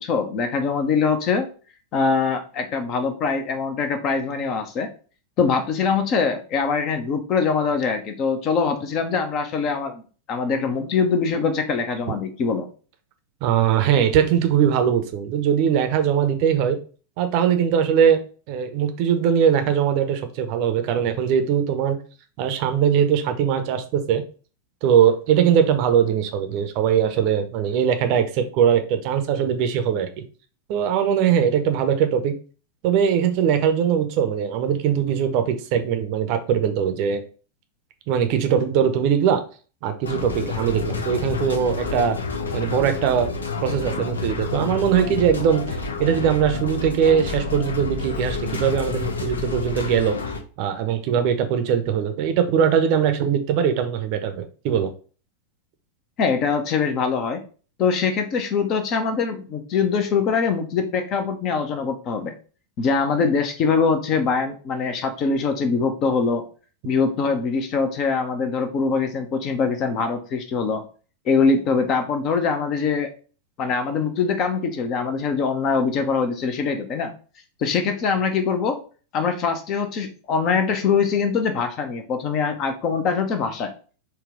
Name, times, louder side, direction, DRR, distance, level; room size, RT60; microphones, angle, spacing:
voice 1, 0.0-1.5 1.9-4.9 5.4-10.0 10.3-12.7 56.2-57.4 57.8-62.3 62.8-66.4 66.8-70.8 71.3-73.1 73.6-77.1 77.6-78.8 79.1-83.7, left 5 dB, 35° left, 7 dB, 0.6 m, -23 dB
voice 2, 13.4-16.8 17.2-18.2 18.5-22.0 22.4-24.2 24.8-30.2 30.7-32.3 32.8-37.2 38.1-39.4 39.8-42.2 42.5-43.3 43.6-50.2 50.6-54.9, right 8 dB, 45° right, 8 dB, 0.6 m, -21 dB
sound 1, 40.0-50.4, left 4 dB, 75° left, 0.6 m, -29 dB
4.1 x 2.2 x 3.6 m, 0.38 s
figure-of-eight pair, 90°, 0 cm